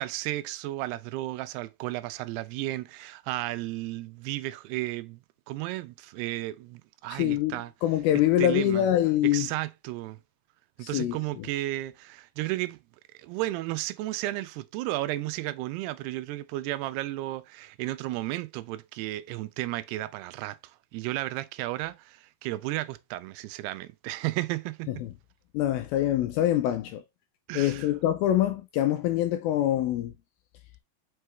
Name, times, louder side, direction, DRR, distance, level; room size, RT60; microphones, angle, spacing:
voice 1, 0.0-5.2 5.5-7.7 8.4-8.9 9.3-10.2 10.8-12.8 13.2-25.0 27.5-27.9, right 16 dB, 85° right, 2.6 m, -33 dB
voice 2, 7.1-9.5 10.8-11.5 24.9-25.1 25.5-27.0 27.5-30.1, left 12 dB, 80° left, 2.2 m, -25 dB
5.8 x 5.5 x 3.2 m
omnidirectional pair, 4.6 m